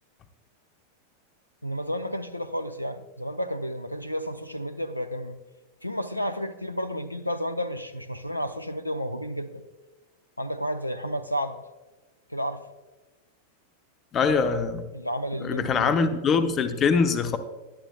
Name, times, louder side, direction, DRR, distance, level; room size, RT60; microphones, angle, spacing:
voice 1, 1.6-5.4 5.8-9.6 10.4-11.6 12.3-12.6 14.9-16.0, equal, 85° left, 11 dB, 0.5 m, -31 dB
voice 2, 14.1-14.8 15.4-17.4, left 5 dB, 30° left, 10 dB, 0.8 m, -23 dB
19.0 x 11.0 x 2.2 m, 1.2 s
figure-of-eight pair, 90°, 0 cm